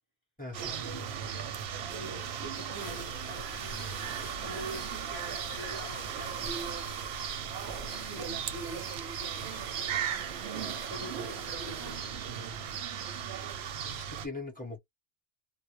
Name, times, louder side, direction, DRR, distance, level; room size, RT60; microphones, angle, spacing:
voice 1, 0.4-1.1 13.8-14.8, left 3 dB, 10° left, 0.8 m, -41 dB
sound 1, 0.5-14.3, right 8 dB, 65° right, 0.7 m, -37 dB
voice 2, 1.8-7.3 8.0-10.1 10.5-12.0, right 2 dB, 15° right, 0.5 m, -45 dB
sound 2, 2.7-12.5, left 2 dB, 40° left, 0.8 m, -48 dB
2.3 x 2.0 x 2.8 m
omnidirectional pair, 1.3 m